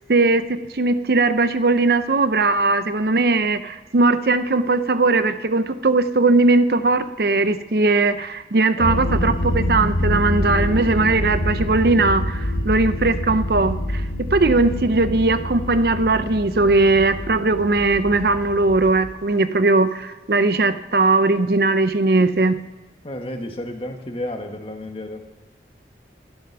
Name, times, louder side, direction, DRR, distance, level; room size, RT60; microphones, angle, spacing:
voice 1, 0.1-14.0 14.3-22.5, right 3 dB, 60° right, 11 dB, 0.6 m, -19 dB
sound 1, 8.8-19.1, left 1 dB, 80° left, 1.4 m, -26 dB
voice 2, 8.8-9.4 23.0-25.3, left 1 dB, 30° left, 5 dB, 1.4 m, -32 dB
13.0 x 11.0 x 6.0 m, 1.1 s
head